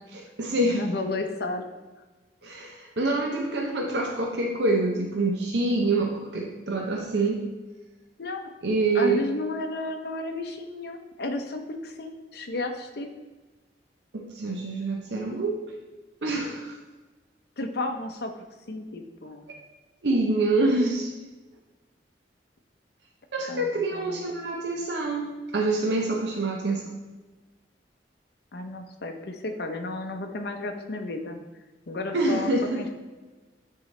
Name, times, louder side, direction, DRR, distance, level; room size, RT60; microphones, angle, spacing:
voice 1, 0.1-0.8 2.4-7.5 8.6-9.2 14.1-15.6 16.2-16.8 19.5-19.6 20.0-21.1 23.3-26.9 32.1-32.9, right 2 dB, 70° right, 1 dB, 0.7 m, -26 dB
voice 2, 0.6-1.6 8.2-8.5 8.9-13.1 17.6-18.3 18.7-19.5 23.5-24.3 28.5-31.4 31.9-32.5 32.8-32.9, left 2 dB, 60° left, 5 dB, 0.7 m, -33 dB
9.0 x 3.8 x 3.2 m, 1.2 s
head